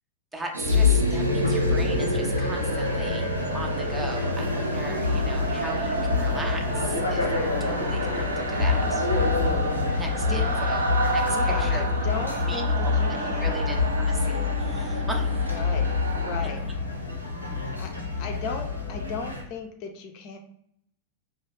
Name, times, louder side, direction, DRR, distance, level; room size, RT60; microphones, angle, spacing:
voice 1, 0.3-3.3 3.5-9.1 9.9-11.8 12.5-12.9 13.2-15.5, right 2 dB, 10° right, 2 dB, 0.5 m, -38 dB
sound 1, 0.5-16.4, right 2 dB, 75° right, 0.4 m, -30 dB
sound 2, 0.6-19.4, left 4 dB, 90° left, 0.6 m, -26 dB
voice 2, 10.2-10.6 11.3-13.7 15.5-15.9 16.2-16.6 17.8-17.9 18.2-20.4, left 4 dB, 45° left, 4 dB, 0.4 m, -36 dB
2.6 x 2.3 x 3.1 m, 0.69 s
figure-of-eight pair, 90°, 0 cm